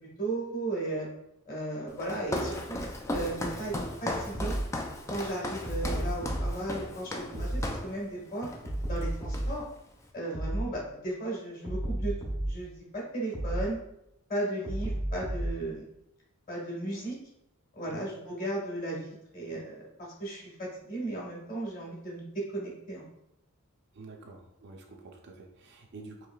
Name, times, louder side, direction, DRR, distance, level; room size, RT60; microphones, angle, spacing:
voice 1, 0.0-1.1 1.5-3.7 4.0-4.5 5.1-8.5 8.9-9.6 10.1-13.8 14.3-15.8 16.5-17.1 17.7-23.0, right 2 dB, 40° left, -3 dB, 1.4 m, -35 dB
Walk footsteps, 2.0-8.0 8.4-8.7 9.0-9.8, left 1 dB, 15° left, 0.3 m, -36 dB
sound 1, 4.3-4.7 5.6-6.5 7.3-7.7 8.6-9.6 10.3-10.7 11.6-12.6 13.3-13.7 14.6-15.6, right 1 dB, 60° left, 1.1 m, -32 dB
voice 2, 7.3-7.8 17.8-18.1 23.9-26.3, right 3 dB, 50° right, 2 dB, 0.5 m, -48 dB
4.8 x 3.0 x 2.3 m, 0.81 s
head